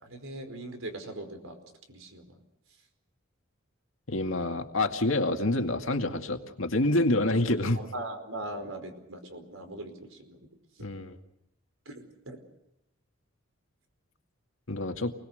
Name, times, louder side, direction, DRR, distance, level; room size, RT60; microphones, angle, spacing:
voice 1, 0.0-1.6 1.9-2.4 7.7-10.5 11.8-12.4, right 1 dB, 80° right, 7 dB, 4.8 m, -40 dB
voice 2, 4.1-7.8 10.8-11.2 14.7-15.1, left 2 dB, 70° left, 5 dB, 2.2 m, -27 dB
28.5 x 20.5 x 6.6 m, 0.84 s
head